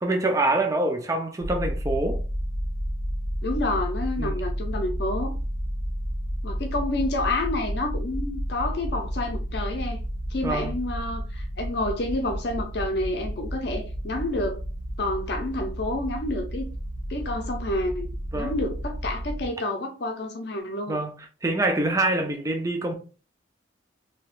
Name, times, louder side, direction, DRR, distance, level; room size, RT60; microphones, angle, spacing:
voice 1, 0.0-2.2 4.2-4.4 10.4-10.8 18.3-18.6 20.9-21.1 21.4-22.9, right 2 dB, 15° right, 0.4 m, -25 dB
sound 1, 1.4-19.5, equal, 80° right, 1.2 m, -31 dB
voice 2, 3.4-5.4 6.4-10.0 10.3-14.6 15.0-16.7 17.1-21.0, left 2 dB, 55° left, 0.6 m, -29 dB
3.5 x 2.8 x 2.4 m
head